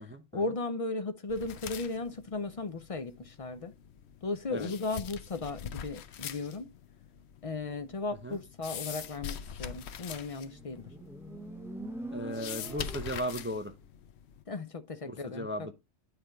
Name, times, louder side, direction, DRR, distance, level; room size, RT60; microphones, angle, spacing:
voice 1, 0.3-3.7 4.2-6.7 7.4-10.9 14.5-15.7, left 3 dB, 45° left, 0.4 m, -36 dB
sound 1, 1.3-14.4, left 8 dB, 70° left, 0.9 m, -44 dB
Motorcycle, 10.3-13.6, right 1 dB, ahead, 0.7 m, -44 dB
voice 2, 12.1-13.7 15.0-15.7, equal, 20° right, 0.4 m, -36 dB
9.7 x 3.4 x 4.3 m
omnidirectional pair, 1.2 m